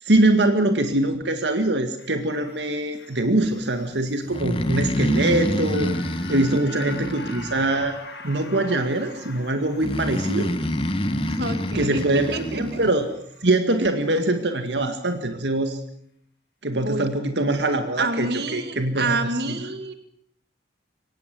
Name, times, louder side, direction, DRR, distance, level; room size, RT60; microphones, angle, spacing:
voice 1, 0.0-6.0 6.3-8.0 8.2-10.5 11.7-13.1 13.4-15.8 16.6-19.2 19.4-19.6, right 2 dB, 85° right, 7 dB, 2.0 m, -23 dB
sound 1, 2.0-14.3 14.7-14.8, left 3 dB, 75° left, 7.5 m, -44 dB
Breathing, 4.3-8.0 9.8-12.9, equal, 30° left, 1.6 m, -27 dB
voice 2, 11.2-12.8 16.8-17.1 18.0-19.9, right 3 dB, 65° right, 8 dB, 2.5 m, -28 dB
23.5 x 19.0 x 7.8 m, 0.69 s
head